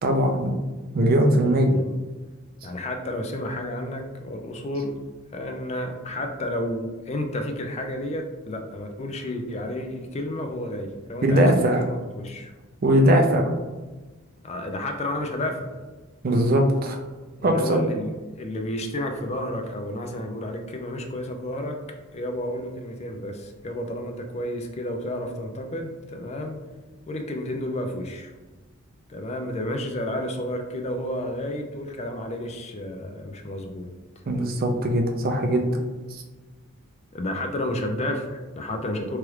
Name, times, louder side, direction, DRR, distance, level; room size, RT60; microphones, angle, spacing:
voice 1, 0.0-0.5 0.9-1.7 11.2-11.8 12.8-13.5 16.2-17.0 17.4-17.8 34.3-35.7 36.1-36.2, right 1 dB, 45° right, 3 dB, 0.4 m, -20 dB
voice 2, 1.4-1.9 2.6-5.0 5.3-12.5 14.4-15.8 17.4-21.8 22.1-26.6 27.1-28.3 29.1-33.9 37.1-39.2, left 1 dB, 30° left, 4 dB, 0.3 m, -31 dB
3.1 x 2.4 x 3.1 m, 1.2 s
head